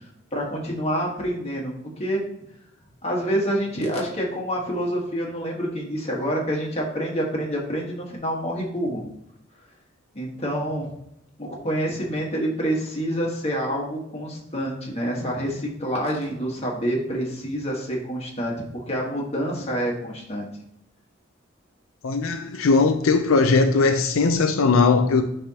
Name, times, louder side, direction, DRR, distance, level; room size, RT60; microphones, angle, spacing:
voice 1, 0.3-2.2 3.0-9.1 10.1-10.8 11.4-20.5, equal, 30° left, 1.4 m, -27 dB
voice 2, 22.0-25.2, left 4 dB, 85° left, 0.5 m, -19 dB
10.0 x 3.4 x 2.9 m
head